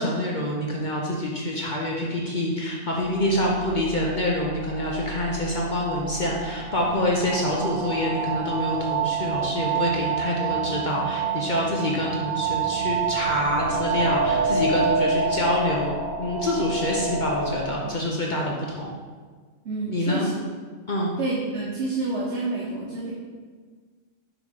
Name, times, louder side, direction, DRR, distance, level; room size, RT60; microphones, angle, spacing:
voice 1, 0.0-18.9 19.9-20.3 20.9-21.1, left 1 dB, 45° left, -2 dB, 0.8 m, -26 dB
sound 1, 2.9-17.7, right 5 dB, 25° right, 0.7 m, -28 dB
voice 2, 19.6-20.3 21.2-23.1, right 3 dB, 60° right, -5 dB, 1.2 m, -28 dB
6.5 x 3.1 x 5.2 m, 1.5 s
omnidirectional pair, 1.3 m